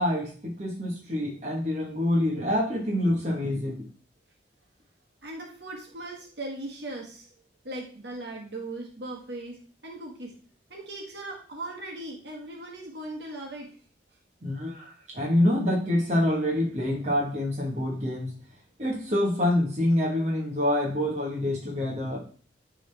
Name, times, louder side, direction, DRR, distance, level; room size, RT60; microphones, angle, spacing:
voice 1, 0.0-3.8 14.4-18.3 18.8-22.2, left 1 dB, 40° right, -3 dB, 1.4 m, -26 dB
voice 2, 5.2-7.3 7.6-10.3 10.7-13.7, right 2 dB, 70° right, -1 dB, 1.7 m, -38 dB
10.0 x 3.8 x 3.4 m, 0.42 s
head